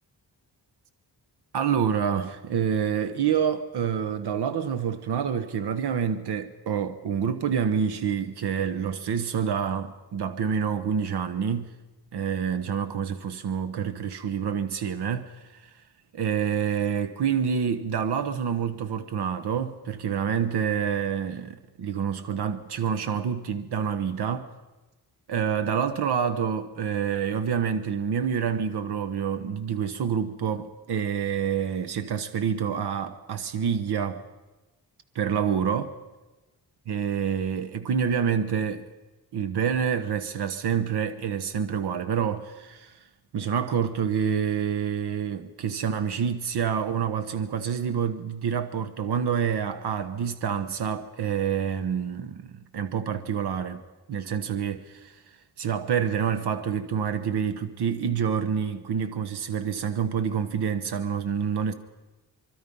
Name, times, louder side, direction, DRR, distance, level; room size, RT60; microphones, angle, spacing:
voice 1, 1.5-11.7 12.1-15.7 16.1-24.5 25.3-34.2 35.1-35.9 36.9-38.9 39.3-43.0 43.3-53.8 54.1-55.2 55.6-61.7, right 7 dB, 70° right, 1.1 m, -27 dB
25.0 x 24.0 x 5.4 m
wide cardioid pair, 170°, 41 cm